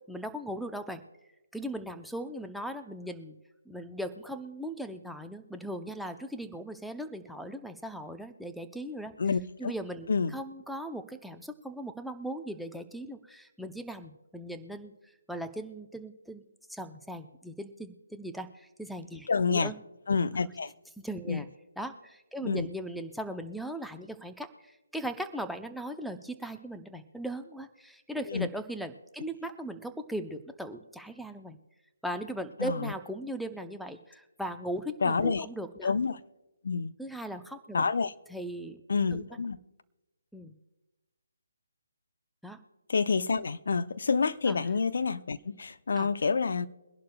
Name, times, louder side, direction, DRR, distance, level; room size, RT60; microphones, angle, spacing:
voice 1, 0.1-1.0 1.5-3.3 3.7-9.1 9.6-14.9 15.3-16.4 16.7-19.8 21.0-21.5 21.8-31.6 32.0-35.9 37.0-37.9 38.3-38.8 39.1-39.3 40.3-40.5 42.4-42.6 44.5-44.6 45.9-46.1, right 1 dB, ahead, 0.6 m, -38 dB
voice 2, 9.2-9.7 10.1-10.3 19.3-19.7 20.1-20.7 21.3-21.4 22.4-22.7 28.3-28.5 32.6-32.9 35.0-35.5 35.8-36.2 36.6-36.9 37.7-38.1 38.9-39.6 42.9-46.7, left 5 dB, 60° left, 0.6 m, -28 dB
23.0 x 11.5 x 2.3 m
figure-of-eight pair, 145°, 0 cm